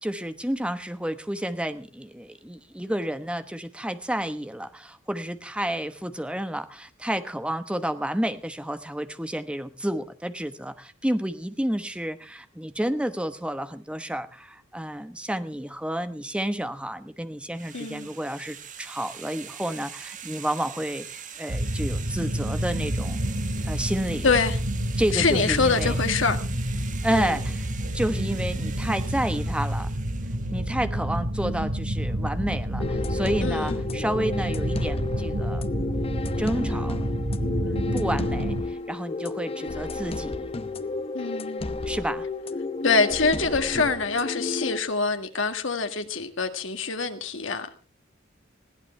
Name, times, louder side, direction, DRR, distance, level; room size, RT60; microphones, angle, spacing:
voice 1, 0.0-23.2 23.6-24.3 25.0-26.0 27.0-27.7 27.9-29.9 30.5-35.7 35.9-37.0 37.6-40.5 41.9-42.3, right 1 dB, 5° right, 1.1 m, -30 dB
sound 1, 17.6-30.6, right 8 dB, 40° right, 1.6 m, -43 dB
voice 2, 17.7-18.1 24.2-24.6 25.1-26.4 27.1-27.4 33.4-33.8 41.1-41.7 42.8-47.7, left 4 dB, 70° left, 1.8 m, -25 dB
sound 2, 21.5-38.6, right 1 dB, 85° right, 2.3 m, -29 dB
sound 3, 32.8-44.8, left 3 dB, 30° left, 0.8 m, -32 dB
20.5 x 16.0 x 3.3 m
head